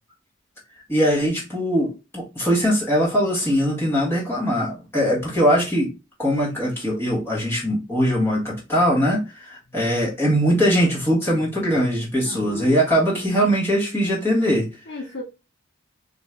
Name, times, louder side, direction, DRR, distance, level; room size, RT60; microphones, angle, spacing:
voice 1, 0.9-5.9 6.2-14.7, equal, 10° left, 1.6 m, -21 dB
voice 2, 12.2-12.8 14.9-15.2, left 2 dB, 60° left, 0.6 m, -34 dB
4.4 x 2.9 x 2.3 m
head